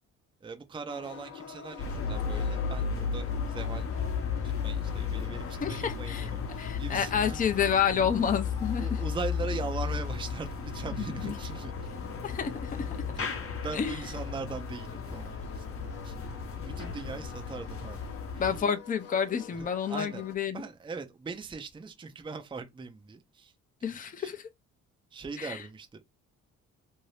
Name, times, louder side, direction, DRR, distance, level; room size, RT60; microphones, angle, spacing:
voice 1, 0.4-3.9 4.4-8.0 8.8-11.9 13.1-16.2 16.5-18.5 19.6-20.2 20.5-23.5 23.8-24.3 25.1-26.0, right 4 dB, 15° right, 0.5 m, -40 dB
sound 1, 0.9-20.4, left 7 dB, 80° left, 0.9 m, -48 dB
sound 2, 1.8-18.6, left 6 dB, 45° left, 0.9 m, -34 dB
voice 2, 5.6-6.3 6.6-8.9 11.0-11.3 12.2-12.9 13.7-13.9 18.4-20.6 23.8-24.5 25.4-25.6, left 7 dB, 25° left, 0.6 m, -29 dB
2.7 x 2.7 x 3.2 m
cardioid pair, 90°, 30 cm